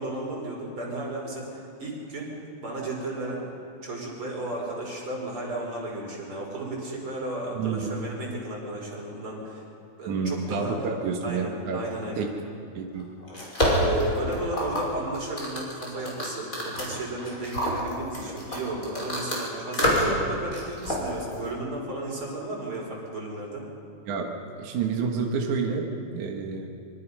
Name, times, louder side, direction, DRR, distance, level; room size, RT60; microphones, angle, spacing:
voice 1, 0.0-2.3 2.6-3.4 3.8-9.6 10.0-10.8 11.2-12.3 13.6-23.6, right 2 dB, 40° right, -2 dB, 5.9 m, -34 dB
voice 2, 7.5-8.0 10.1-11.8 12.2-12.3 12.8-13.1 24.1-26.7, right 5 dB, 75° right, 1 dB, 3.0 m, -29 dB
sound 1, 13.0-19.4 19.7-20.2 20.5-21.5, equal, 25° left, 5.8 m, -27 dB
25.5 x 25.0 x 5.6 m, 2.5 s
omnidirectional pair, 3.5 m